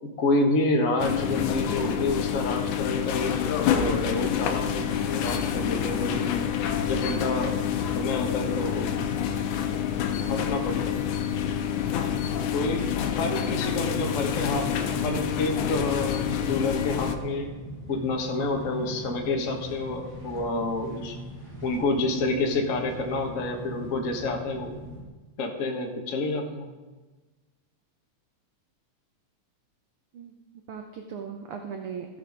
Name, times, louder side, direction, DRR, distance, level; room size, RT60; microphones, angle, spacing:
voice 1, 0.0-3.4 3.7-6.3 6.9-7.6 7.9-8.9 10.3-11.0 12.5-12.8 13.1-17.5 17.9-21.2 21.6-24.8 25.4-26.7, left 2 dB, 50° left, 2 dB, 0.9 m, -28 dB
sound 1, 1.0-17.2, left 9 dB, 90° left, 2.3 m, -27 dB
sound 2, 14.5-25.0, right 1 dB, 15° right, 2.9 m, -40 dB
voice 2, 18.8-19.1 30.1-30.3 30.7-32.1, right 7 dB, 70° right, 4 dB, 1.3 m, -38 dB
15.5 x 6.2 x 5.2 m, 1.2 s
omnidirectional pair, 3.4 m